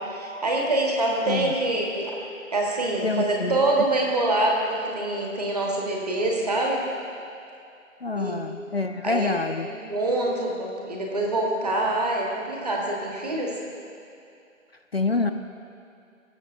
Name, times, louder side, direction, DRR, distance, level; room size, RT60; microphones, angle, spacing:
voice 1, 0.0-2.2 2.5-6.8 8.1-8.4 9.0-9.4 9.7-13.6, right 2 dB, 30° right, -1 dB, 1.2 m, -25 dB
voice 2, 3.0-3.9 8.0-9.7 14.9-15.3, left 3 dB, 50° left, 5 dB, 0.4 m, -26 dB
20.5 x 7.4 x 2.6 m, 2.5 s
figure-of-eight pair, 160°, 40 cm